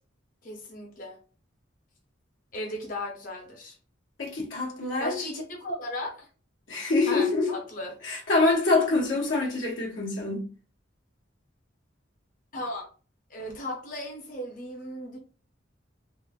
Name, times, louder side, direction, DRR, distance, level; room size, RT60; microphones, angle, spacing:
voice 1, 0.4-1.2 2.5-3.8 5.0-6.3 7.1-7.9 12.5-12.8 13.3-15.2, left 1 dB, 45° left, 0.6 m, -36 dB
voice 2, 4.2-5.3 6.7-7.5 8.0-10.4, left 3 dB, 85° left, 0.8 m, -25 dB
3.0 x 2.0 x 2.3 m
head